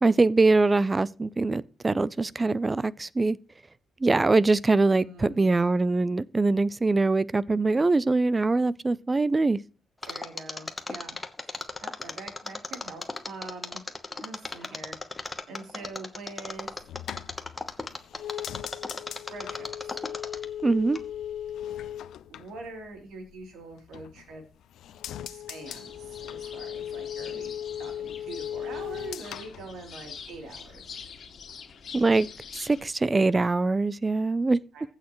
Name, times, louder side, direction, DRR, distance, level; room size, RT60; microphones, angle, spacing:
voice 1, 0.0-3.4 4.0-9.6 20.6-21.0 31.9-32.3 32.5-34.6, right 3 dB, 15° right, 0.4 m, -23 dB
voice 2, 5.0-5.5 10.1-11.2 11.8-13.8 14.2-14.9 15.5-16.7 19.3-20.0 22.3-24.4 25.3-27.5 27.8-30.9 34.7-34.8, right 3 dB, 80° right, 3.3 m, -44 dB
Mechanisms, 10.0-20.6 20.9-21.0, left 3 dB, 15° left, 1.0 m, -35 dB
sound 1, 16.6-23.4 23.7-24.4 24.7-30.4 30.7-31.2, left 10 dB, 80° left, 0.5 m, -38 dB
sound 2, 25.6-32.9, left 6 dB, 50° left, 2.2 m, -45 dB
15.5 x 6.5 x 3.1 m
cardioid pair, 155°, 0 cm